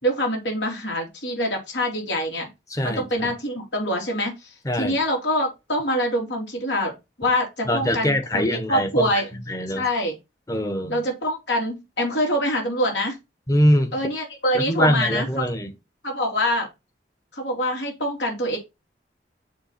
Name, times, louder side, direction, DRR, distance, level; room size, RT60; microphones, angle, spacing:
voice 1, 0.0-2.5 2.8-9.3 9.7-10.1 10.9-13.2 13.9-15.5 16.0-16.7 17.3-18.6, equal, 75° left, 3.3 m, -25 dB
voice 2, 2.7-3.3 4.6-5.0 7.6-9.2 9.5-9.8 10.5-11.0 13.5-14.0 14.5-15.7, equal, 20° left, 1.1 m, -23 dB
7.0 x 3.4 x 5.7 m
head